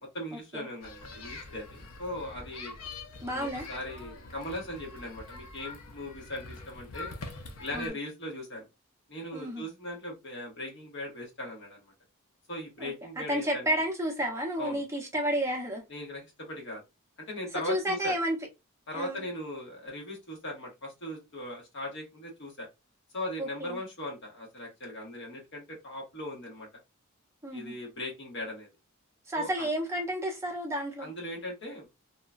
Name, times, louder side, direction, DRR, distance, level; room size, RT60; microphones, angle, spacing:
voice 1, 0.0-2.7 3.2-7.2 7.6-8.7 9.1-11.9 12.5-13.8 14.6-14.8 15.9-16.8 17.3-18.1 18.9-22.7 23.1-26.7 27.5-28.7 29.3-29.7 31.0-31.9, left 1 dB, 60° left, 1.3 m, -39 dB
sound 1, 0.8-7.9, left 3 dB, 80° left, 0.6 m, -44 dB
voice 2, 3.2-3.6 7.7-7.9 9.3-9.6 12.8-15.8 17.6-18.4 18.9-19.2 23.4-23.8 27.4-27.7 29.3-31.1, equal, 15° right, 0.7 m, -31 dB
2.9 x 2.2 x 2.4 m
head